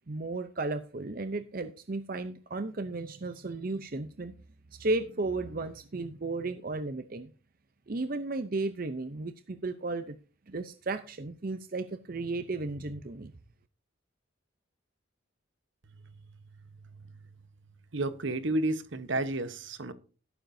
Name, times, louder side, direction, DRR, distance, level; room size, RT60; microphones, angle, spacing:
voice 1, 0.1-4.4 4.7-7.3 7.9-10.2 10.5-13.3, right 2 dB, 45° right, 0.6 m, -34 dB
voice 2, 17.9-19.9, right 2 dB, 65° right, 1.1 m, -31 dB
13.0 x 11.5 x 2.7 m
head